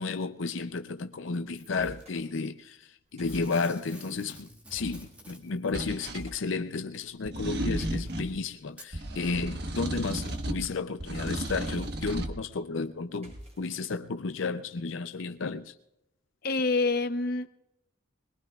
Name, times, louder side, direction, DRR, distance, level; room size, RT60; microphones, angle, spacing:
voice 1, 0.0-15.7, left 4 dB, 80° left, 0.6 m, -33 dB
Packing tape duct tape / Tearing, 1.5-2.0 3.2-5.8 6.9-7.0 7.9-8.0 8.7-8.9 9.6-9.7, equal, 5° right, 1.8 m, -50 dB
sound 1, 1.6-2.2 3.1-3.6 4.6-5.2 6.1-6.4 7.4-8.2 9.9-10.4 11.5-12.2 13.2-13.8, equal, 35° right, 7.4 m, -47 dB
sound 2, 5.7-6.2 7.2-8.3 8.9-10.7 11.0-12.3, right 1 dB, 55° right, 1.3 m, -34 dB
voice 2, 16.4-17.5, left 3 dB, 50° left, 0.9 m, -26 dB
21.5 x 21.5 x 2.4 m
head